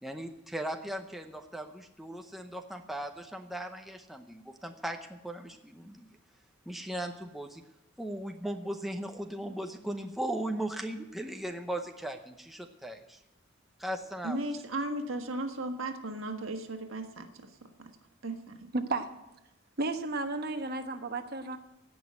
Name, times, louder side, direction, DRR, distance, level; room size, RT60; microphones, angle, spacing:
voice 1, 0.0-6.1 6.7-7.6 8.0-13.2 13.8-14.4, right 1 dB, ahead, 4 dB, 0.7 m, -38 dB
voice 2, 14.2-17.9 18.2-18.7, right 2 dB, 75° right, 5 dB, 1.5 m, -36 dB
voice 3, 18.7-19.1 19.8-21.6, right 2 dB, 50° right, 6 dB, 1.2 m, -33 dB
16.5 x 6.3 x 8.8 m, 0.90 s
head